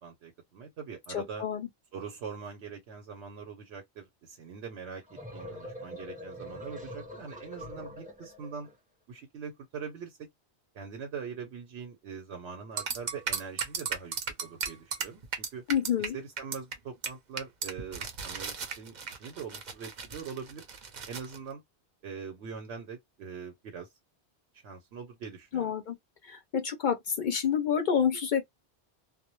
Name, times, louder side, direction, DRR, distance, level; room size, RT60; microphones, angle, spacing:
voice 1, 0.0-1.4 1.9-8.7 9.1-10.3 10.7-14.2 14.4-15.6 16.0-20.7 21.0-21.6 22.0-23.9 24.6-25.7, right 6 dB, 85° right, 1.0 m, -42 dB
voice 2, 1.1-1.7 15.7-16.2 25.5-26.0 26.2-28.4, left 8 dB, 55° left, 0.6 m, -28 dB
sound 1, 4.9-8.8, left 1 dB, 10° right, 0.5 m, -44 dB
sound 2, 12.8-16.1 16.4-16.7 17.0-17.1 17.4-21.4, right 6 dB, 50° right, 0.7 m, -35 dB
2.2 x 2.0 x 2.9 m
omnidirectional pair, 1.1 m